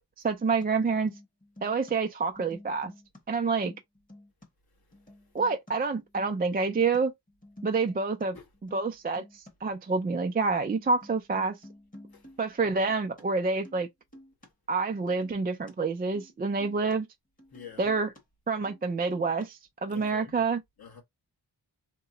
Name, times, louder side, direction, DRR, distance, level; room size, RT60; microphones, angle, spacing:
voice 1, 0.2-1.1 1.6-2.9 3.3-3.7 5.3-7.1 7.6-8.4 8.7-11.6 12.4-13.9 14.7-17.1 17.8-18.1 18.5-20.6, right 4 dB, 25° right, 0.3 m, -28 dB
sound 1, 0.6-0.7 0.9-1.9 2.2-3.2 3.5-4.5 4.9-5.7 6.0-7.0 7.3-8.2 8.5-8.9 9.2-9.5 10.1-10.2 10.4-10.5 10.7-13.2 13.5-13.8 14.1-14.5 14.9-15.7 16.0-16.3 16.6-17.0 17.4-18.2 18.5-18.8 19.1-19.5 19.9-20.1, left 1 dB, 20° left, 1.1 m, -51 dB
voice 2, 17.5-17.9 19.9-20.3 20.8-21.0, left 7 dB, 55° left, 1.2 m, -47 dB
2.9 x 2.1 x 3.8 m
wide cardioid pair, 120°, 43 cm